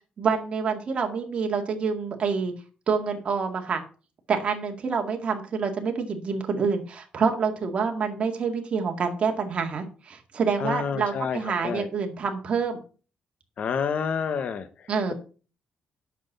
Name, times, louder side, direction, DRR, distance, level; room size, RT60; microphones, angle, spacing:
voice 1, 0.2-2.5 2.9-3.8 4.3-12.8 14.9-15.1, right 5 dB, 50° right, 3 dB, 2.0 m, -27 dB
voice 2, 10.6-11.9 13.6-14.7, left 6 dB, 60° left, 11 dB, 1.1 m, -28 dB
8.3 x 6.2 x 6.6 m, 0.37 s
cardioid pair, 90°, 3 cm